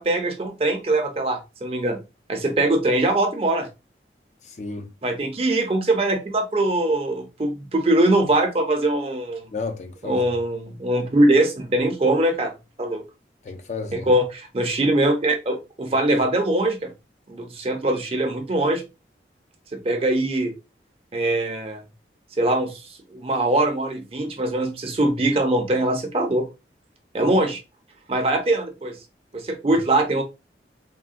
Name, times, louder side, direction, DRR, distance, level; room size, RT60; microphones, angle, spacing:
voice 1, 0.0-2.0 2.3-3.7 5.0-9.5 10.0-12.5 12.8-13.0 13.9-16.9 17.3-18.8 19.7-20.5 21.1-21.8 22.4-22.8 23.1-26.5 27.1-27.6 28.1-28.9 29.3-30.2, right 1 dB, 35° right, 0.5 m, -22 dB
voice 2, 4.4-4.9 9.5-10.3 13.4-14.1 29.7-29.8, left 4 dB, 40° left, 0.4 m, -32 dB
3.5 x 2.1 x 2.5 m
head